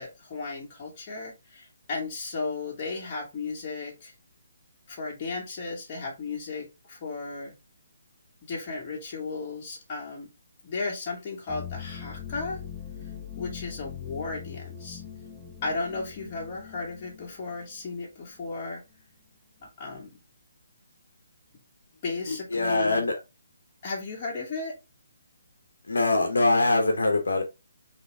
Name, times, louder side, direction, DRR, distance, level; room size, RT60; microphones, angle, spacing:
voice 1, 0.0-4.1 4.9-7.5 8.5-10.3 10.6-12.6 13.4-15.0 15.6-18.8 19.8-20.2 22.0-23.0 23.8-24.8, left 3 dB, 35° left, 2.1 m, -35 dB
sound 1, 11.5-18.0 18.2-18.4 19.6-19.7, left 9 dB, 5° left, 1.6 m, -42 dB
voice 2, 22.3-23.1 25.9-27.4, left 2 dB, 80° left, 1.0 m, -23 dB
3.8 x 3.2 x 3.5 m
hypercardioid pair, 150°, 0 cm